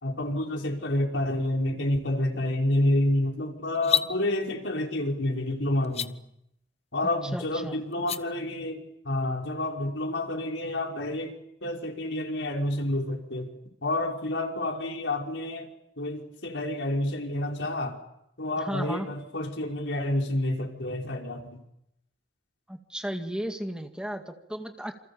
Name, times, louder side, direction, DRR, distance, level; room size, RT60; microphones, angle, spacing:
voice 1, 0.0-6.2 6.9-13.5 13.8-15.7 16.0-18.0 18.4-21.6, left 1 dB, 85° left, 1 dB, 5.3 m, -29 dB
sound 1, 3.7-4.1 5.8-6.1 7.9-8.2, left 7 dB, 35° left, 1.0 m, -26 dB
voice 2, 7.3-7.8 18.6-19.1 22.7-24.9, equal, 5° right, 5 dB, 2.1 m, -34 dB
28.5 x 28.0 x 7.2 m, 0.80 s
head